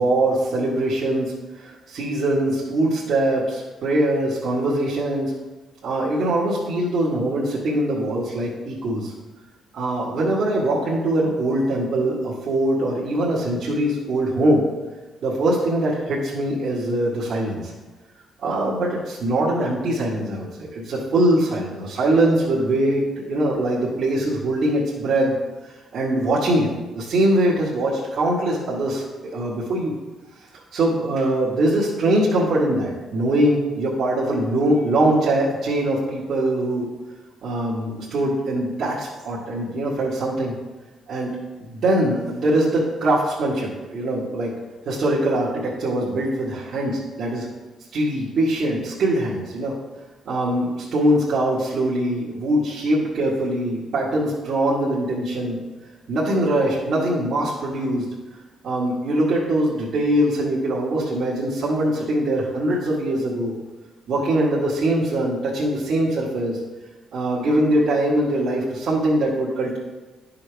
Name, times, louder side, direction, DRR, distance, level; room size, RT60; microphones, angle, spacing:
voice 1, 0.0-5.3 5.8-9.1 9.7-14.7 15.2-17.7 18.4-23.0 23.3-25.4 25.6-30.0 30.7-36.9 37.4-40.5 41.1-41.4 41.7-44.5 44.9-47.5 47.9-49.7 50.3-55.6 56.1-58.1 58.6-63.5 64.1-66.6 67.1-69.8, right 1 dB, 65° right, -7 dB, 1.8 m, -22 dB
11.0 x 5.8 x 3.5 m, 1.2 s
cardioid pair, 90°, 0 cm